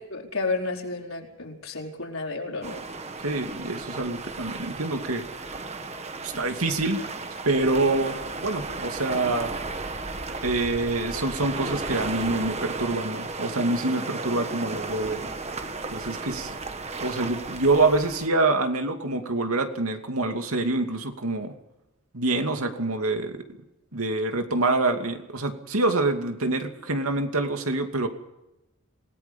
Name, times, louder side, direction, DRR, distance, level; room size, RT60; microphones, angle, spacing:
voice 1, 0.1-2.8, left 3 dB, 70° left, 1 dB, 4.6 m, -31 dB
sound 1, 2.6-18.3, right 3 dB, 30° right, 1.4 m, -34 dB
voice 2, 3.2-5.5 6.2-7.1 7.4-9.5 10.4-15.2 15.9-16.6 17.0-21.5 22.1-23.4 23.9-28.1, right 2 dB, 85° right, 5 dB, 2.5 m, -26 dB
27.0 x 18.5 x 5.5 m, 0.94 s
head